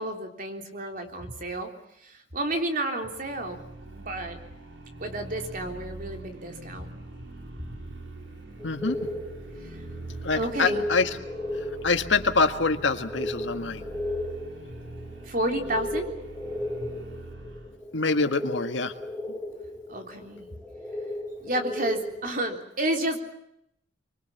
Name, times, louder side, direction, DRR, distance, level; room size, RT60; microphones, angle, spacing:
voice 1, 0.0-1.7 2.0-4.4 5.0-6.9 10.4-10.8 15.3-16.2 19.9-20.5 21.4-23.2, right 1 dB, 50° right, 4 dB, 3.5 m, -31 dB
sound 1, 3.0-17.8, right 2 dB, 75° right, 3.8 m, -43 dB
voice 2, 8.6-9.1 10.2-11.2 11.8-13.8 17.9-18.9, left 4 dB, 90° left, 7 dB, 1.8 m, -25 dB
sound 2, 8.6-22.3, left 1 dB, 5° right, 4.0 m, -36 dB
24.5 x 23.5 x 7.3 m, 0.78 s
head